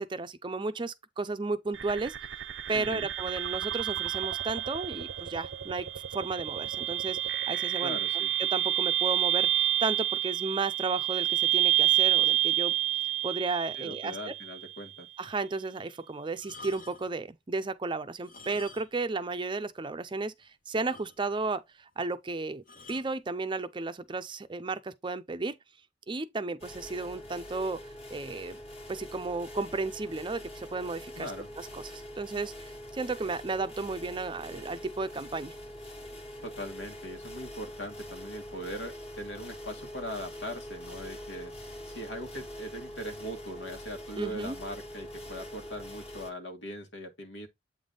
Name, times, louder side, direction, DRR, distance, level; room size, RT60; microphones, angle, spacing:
voice 1, 0.0-2.2 2.7-8.0 8.4-12.7 13.2-14.3 15.2-21.6 22.0-22.6 22.9-25.6 26.1-27.8 28.1-28.6 28.9-31.3 31.6-35.6 44.2-44.6, right 3 dB, 25° right, 0.5 m, -33 dB
sound 1, 1.7-14.7, right 14 dB, 80° right, 0.5 m, -29 dB
voice 2, 2.7-3.1 7.8-8.3 13.8-15.1 31.2-31.5 36.4-41.5 41.9-47.5, equal, 85° left, 1.8 m, -40 dB
sound 2, 16.3-17.2 18.1-19.1 19.4-19.5 20.1-20.2 20.4-20.5 20.9-21.5 22.7-23.1 24.0-24.2, left 3 dB, 50° left, 1.1 m, -49 dB
sound 3, 26.6-46.3, equal, 35° left, 1.5 m, -44 dB
8.0 x 3.5 x 3.8 m
head